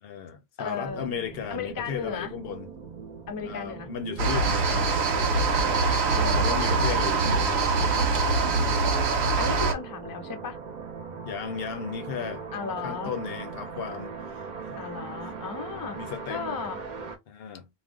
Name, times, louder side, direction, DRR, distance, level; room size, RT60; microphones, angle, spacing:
voice 1, 0.0-2.7 3.4-5.8 6.3-8.1 11.2-12.4 12.8-14.8 15.9-16.4 17.3-17.7, left 7 dB, 75° left, 0.8 m, -35 dB
voice 2, 0.6-1.1 1.5-2.3 3.3-3.9 6.1-6.5 9.3-10.6 12.5-13.1 14.8-16.0 16.3-16.8, left 6 dB, 35° left, 0.3 m, -35 dB
sound 1, 0.8-17.2, right 5 dB, 50° right, 0.7 m, -40 dB
sound 2, 4.2-9.7, right 3 dB, 85° right, 0.9 m, -23 dB
2.4 x 2.1 x 3.5 m
omnidirectional pair, 1.1 m